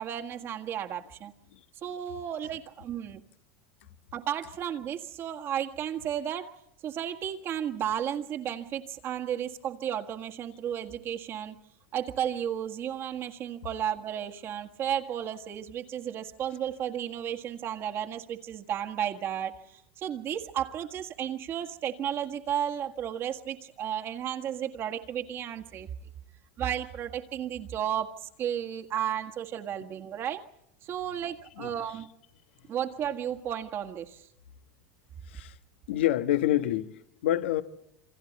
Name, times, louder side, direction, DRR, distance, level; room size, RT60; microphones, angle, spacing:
voice 1, 0.0-1.3 1.8-3.2 4.1-11.6 11.9-25.9 26.6-30.4 30.8-32.1 32.7-34.3, right 9 dB, 40° right, 1.7 m, -33 dB
voice 2, 35.9-37.6, left 13 dB, 85° left, 1.3 m, -27 dB
28.0 x 25.5 x 4.2 m
supercardioid pair, 125°, 6 cm